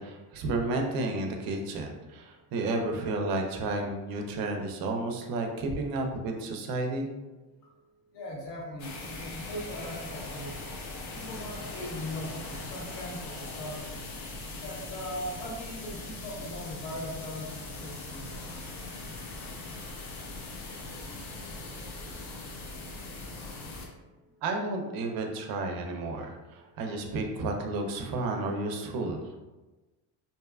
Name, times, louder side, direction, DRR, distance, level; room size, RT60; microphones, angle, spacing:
voice 1, 0.0-7.1 24.4-29.4, right 2 dB, 60° right, 3 dB, 0.5 m, -32 dB
voice 2, 8.1-10.5 11.1-14.0 14.6-18.5, left 1 dB, 80° left, -2 dB, 0.8 m, -39 dB
sound 1, 8.8-23.9, left 2 dB, 45° left, 0.5 m, -40 dB
2.7 x 2.2 x 2.2 m, 1.1 s
cardioid pair, 115°, 40 cm